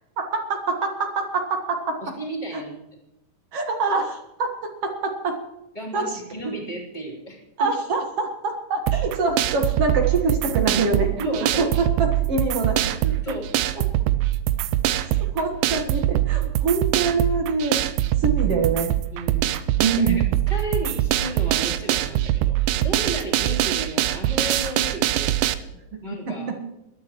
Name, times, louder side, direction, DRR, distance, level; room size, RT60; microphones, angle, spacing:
voice 1, 0.3-2.0 3.5-4.5 4.8-5.4 5.9-6.1 7.6-11.1 11.8-13.1 15.3-18.9 19.8-20.2 26.3-26.6, right 4 dB, 55° right, 3 dB, 2.1 m, -25 dB
voice 2, 2.0-2.8 5.7-7.7 11.2-11.7 13.2-13.6 19.1-19.6 20.0-25.3 26.0-26.5, right 1 dB, 15° left, -1 dB, 3.0 m, -33 dB
sound 1, 8.9-25.5, right 13 dB, 80° right, 2.1 m, -23 dB
21.0 x 13.0 x 3.1 m, 0.90 s
omnidirectional pair, 3.9 m